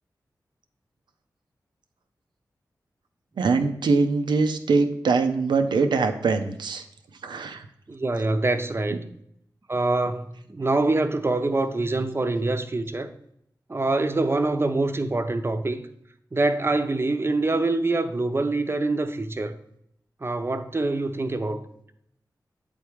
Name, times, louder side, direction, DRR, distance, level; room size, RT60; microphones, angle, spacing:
voice 1, 3.4-6.8 7.2-7.7, right 4 dB, 90° right, 0.6 m, -23 dB
voice 2, 7.9-9.0 9.7-13.1 13.7-15.8 16.3-19.6 20.2-21.6, right 2 dB, 35° right, 0.6 m, -25 dB
8.2 x 3.5 x 4.6 m
cardioid pair, 50°, 8 cm